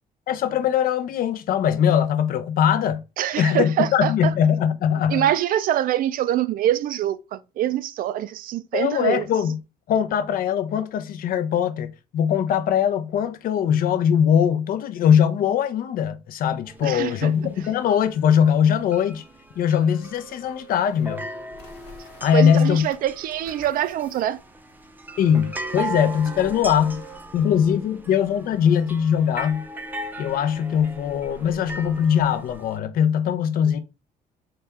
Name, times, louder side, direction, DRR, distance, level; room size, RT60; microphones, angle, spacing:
voice 1, 0.3-3.0 3.4-5.2 8.7-9.6 9.9-19.2 19.6-21.2 22.2-22.8 25.2-27.0 27.3-29.6 30.2-33.8, left 8 dB, 60° left, 0.6 m, -21 dB
voice 2, 3.2-4.3 5.1-9.3 16.8-17.3 22.3-24.4, right 12 dB, 55° right, 0.4 m, -24 dB
sound 1, 16.6-32.8, right 2 dB, 10° right, 0.5 m, -38 dB
sound 2, 19.7-22.4 22.8-24.3 24.7-24.8 25.2-27.2, right 4 dB, 85° left, 1.1 m, -47 dB
4.1 x 2.3 x 3.4 m
cardioid pair, 110°, 17 cm